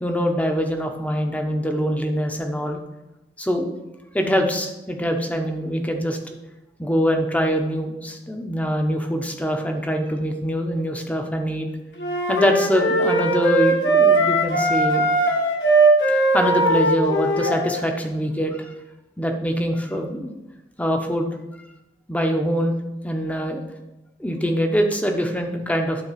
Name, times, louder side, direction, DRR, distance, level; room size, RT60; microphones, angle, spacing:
voice 1, 0.0-2.8 3.4-3.7 4.1-6.2 6.8-11.7 12.3-15.0 16.1-18.7 19.2-20.3 20.8-21.4 22.1-22.8 23.0-23.6 24.2-26.0, equal, 10° left, 3 dB, 1.0 m, -24 dB
sound 1, 12.0-17.8, right 2 dB, 80° left, 1.7 m, -19 dB
12.0 x 4.3 x 5.8 m, 0.98 s
head